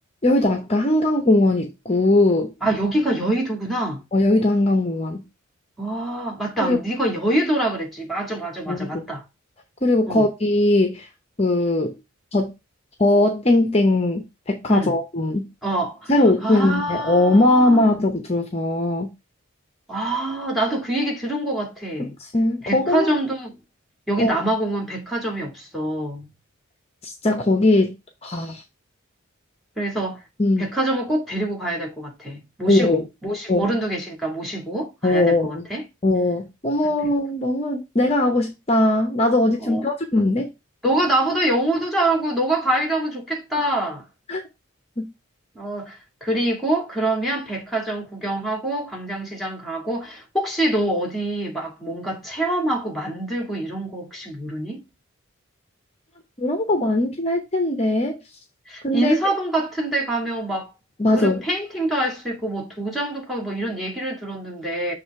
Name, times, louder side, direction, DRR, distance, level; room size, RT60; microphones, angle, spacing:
voice 1, 0.2-2.5 4.1-5.2 6.6-6.8 8.7-9.0 9.8-11.1 11.4-12.0 12.3-12.5 13.0-15.5 16.1-19.1 22.0-23.1 24.2-24.3 27.0-28.0 28.2-28.6 30.4-30.6 32.7-33.0 33.5-33.7 35.0-35.7 36.0-40.5 43.5-43.7 44.3-44.4 45.0-45.1 56.4-58.2 58.8-59.2 61.0-61.4, left 2 dB, 30° left, 0.8 m, -20 dB
voice 2, 2.6-4.0 5.8-9.2 10.1-10.3 14.7-14.9 15.6-16.1 16.4-17.8 19.9-22.1 22.6-23.6 24.1-26.3 29.8-30.2 30.6-35.8 39.6-39.8 40.8-44.0 45.6-54.8 58.7-60.7 61.1-64.9, right 1 dB, ahead, 2.0 m, -25 dB
7.1 x 3.2 x 4.6 m
head